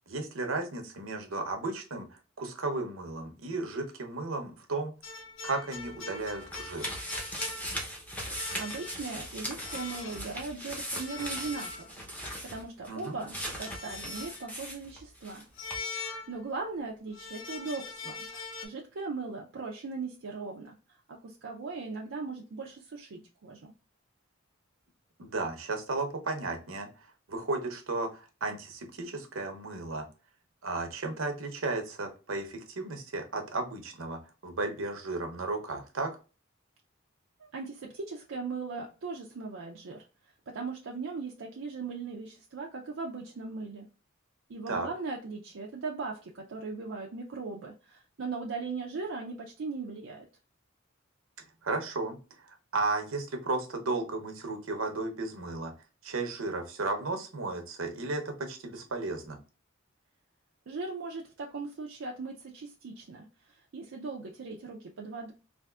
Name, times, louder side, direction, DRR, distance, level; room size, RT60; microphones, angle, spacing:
voice 1, 0.1-4.9 5.4-6.9 12.9-13.2 25.2-26.9 27.3-30.1 30.6-36.1 44.7-44.9 51.6-52.2 52.4-55.7 56.0-59.4, right 3 dB, 90° right, 5 dB, 0.8 m, -34 dB
sound 1, 5.0-8.0 8.3-9.2 9.6-10.3 10.9-12.2 13.5-14.5 15.6-16.7 17.1-18.7, left 4 dB, 70° left, 0.6 m, -42 dB
sound 2, 5.8-15.4 15.7-15.8, equal, 10° left, 0.7 m, -39 dB
voice 2, 8.6-11.9 12.4-15.5 16.3-18.3 18.6-23.7 37.4-40.1 40.5-43.9 44.5-50.3 60.7-65.3, right 4 dB, 70° right, 0 dB, 0.5 m, -39 dB
3.4 x 2.5 x 2.3 m, 0.32 s
head